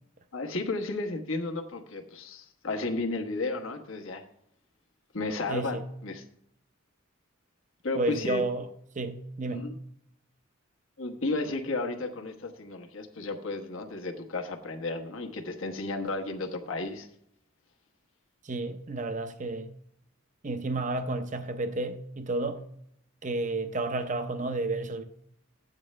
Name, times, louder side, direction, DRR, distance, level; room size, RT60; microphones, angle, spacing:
voice 1, 0.3-4.2 5.1-6.2 7.8-8.4 9.5-9.7 11.0-17.1, left 2 dB, 70° left, 1.3 m, -33 dB
voice 2, 5.5-5.9 7.9-8.7 8.9-9.7 18.4-19.8 20.4-22.6 23.2-25.0, right 2 dB, 35° right, 0.6 m, -31 dB
13.0 x 8.8 x 3.3 m
head